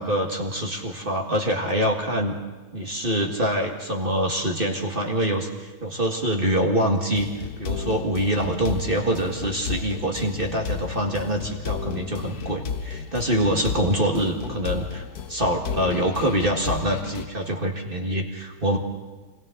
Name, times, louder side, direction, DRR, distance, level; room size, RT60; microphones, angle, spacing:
voice 1, 0.0-2.3 2.7-18.8, right 1 dB, 35° right, 1 dB, 1.9 m, -25 dB
sound 1, 7.2-17.3, left 6 dB, 80° left, 1.5 m, -33 dB
29.5 x 23.5 x 3.9 m, 1.3 s
omnidirectional pair, 1.6 m